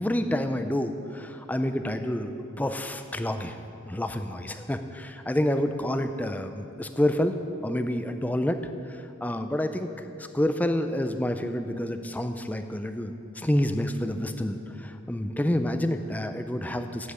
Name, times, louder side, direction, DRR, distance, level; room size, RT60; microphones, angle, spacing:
voice 1, 0.0-3.6 3.8-7.3 7.6-8.6 8.8-9.9 10.2-17.1, left 1 dB, 10° left, 8 dB, 0.4 m, -28 dB
8.4 x 7.8 x 8.1 m, 2.9 s
head